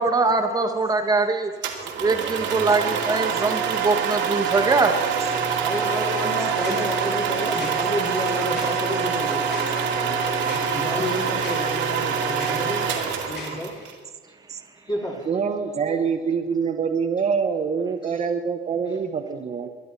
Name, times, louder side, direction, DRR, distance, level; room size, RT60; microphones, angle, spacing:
voice 1, 0.0-1.5 2.0-5.0, right 3 dB, 20° right, 5 dB, 1.4 m, -22 dB
sound 1, 1.6-13.9, right 6 dB, 80° right, 2.3 m, -25 dB
voice 2, 5.6-12.9 13.2-13.7 14.9-15.4 18.0-18.3, left 1 dB, 25° left, -3 dB, 2.8 m, -31 dB
sound 2, 6.2-13.8, left 3 dB, 65° left, 5.8 m, -44 dB
voice 3, 15.3-19.7, right 6 dB, 35° right, 7 dB, 1.1 m, -25 dB
22.5 x 11.5 x 4.2 m, 1.5 s
cardioid pair, 130°, 19 cm